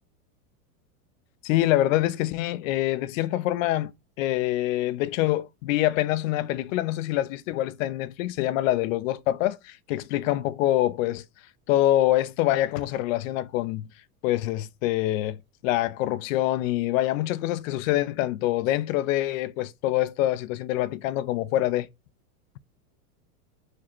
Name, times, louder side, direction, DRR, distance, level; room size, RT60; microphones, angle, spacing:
voice 1, 1.4-3.9 4.2-11.2 11.7-13.9 14.2-15.4 15.6-21.9, left 14 dB, 60° left, 0.5 m, -25 dB
5.0 x 2.1 x 4.3 m
supercardioid pair, 125°, 46 cm